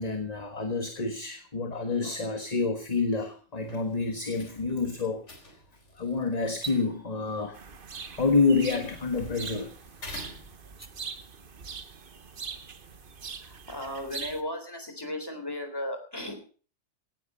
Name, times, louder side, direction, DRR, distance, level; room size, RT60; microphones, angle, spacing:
voice 1, 0.0-5.2 5.5-5.6 5.9-7.6 8.1-9.7, left 4 dB, 35° left, 6 dB, 1.5 m, -28 dB
sound 1, 3.6-11.1, left 1 dB, 80° left, 3.9 m, -50 dB
sound 2, 6.5-6.8 8.5-8.8 10.6-10.9, right 5 dB, 15° right, 1.3 m, -40 dB
sound 3, 7.5-14.4, right 5 dB, 50° right, 1.2 m, -42 dB
voice 2, 13.4-16.4, left 1 dB, 20° left, 6 dB, 3.6 m, -36 dB
17.5 x 11.0 x 5.5 m, 0.41 s
omnidirectional pair, 1.2 m